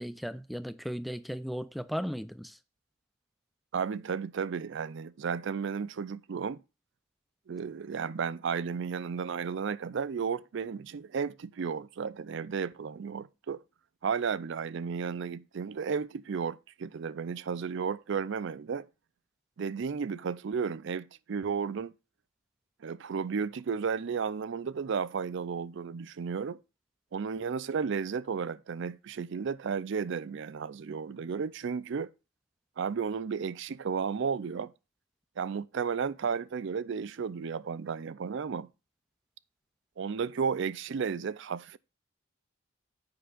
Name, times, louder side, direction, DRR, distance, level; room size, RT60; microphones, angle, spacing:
voice 1, 0.0-2.6, equal, ahead, 0.4 m, -36 dB
voice 2, 3.7-6.6 7.5-13.6 14.0-18.9 19.6-21.9 22.8-26.6 27.1-32.1 32.8-34.7 35.4-38.7 40.0-41.8, right 6 dB, 60° right, 0.4 m, -33 dB
9.9 x 7.8 x 2.4 m
head